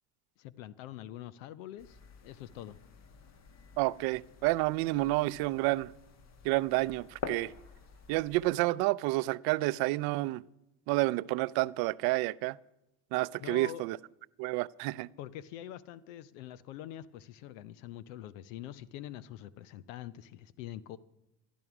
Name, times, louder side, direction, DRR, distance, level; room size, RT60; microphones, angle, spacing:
voice 1, 0.4-2.8 13.4-13.8 15.2-21.0, left 12 dB, 85° left, 0.7 m, -45 dB
sound 1, 1.8-8.5, left 5 dB, 45° left, 1.4 m, -48 dB
voice 2, 3.8-5.9 6.4-7.5 8.1-10.4 10.9-12.6 13.1-14.0 14.4-15.1, right 20 dB, 70° right, 0.6 m, -29 dB
14.5 x 11.5 x 6.0 m
supercardioid pair, 90°, 38 cm